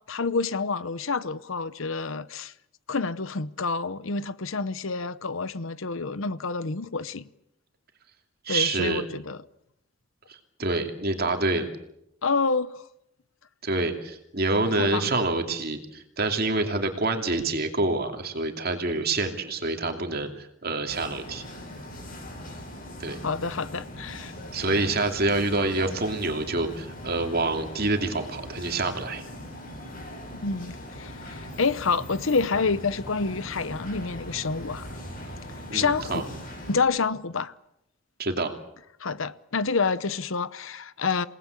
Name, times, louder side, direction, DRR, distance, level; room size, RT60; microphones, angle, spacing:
voice 1, 0.1-2.5 2.9-7.2 8.5-9.4 12.2-12.8 14.7-15.1 23.2-24.3 30.4-34.9 35.7-36.2 36.7-37.5 39.0-41.3, left 4 dB, 65° left, 0.9 m, -28 dB
voice 2, 8.4-9.0 10.3-11.7 13.6-21.4 23.0-23.2 24.5-29.2 35.7-36.2 38.2-38.5, right 2 dB, 45° right, 2.7 m, -27 dB
sound 1, 20.9-36.8, equal, 40° left, 7.0 m, -40 dB
28.5 x 19.0 x 8.2 m
head